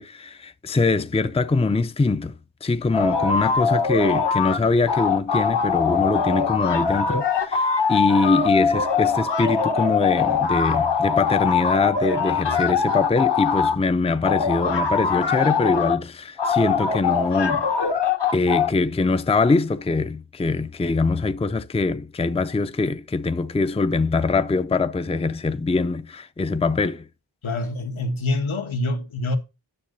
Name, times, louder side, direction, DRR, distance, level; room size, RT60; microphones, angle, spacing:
voice 1, 0.0-17.7 18.3-27.1, left 3 dB, 15° left, 0.5 m, -23 dB
sound 1, 2.9-4.6 4.9-13.8 14.2-16.0 16.4-18.7, left 6 dB, 60° left, 1.2 m, -22 dB
voice 2, 27.4-29.4, left 2 dB, 80° left, 1.7 m, -26 dB
10.5 x 6.6 x 4.0 m
wide cardioid pair, 95°, 47 cm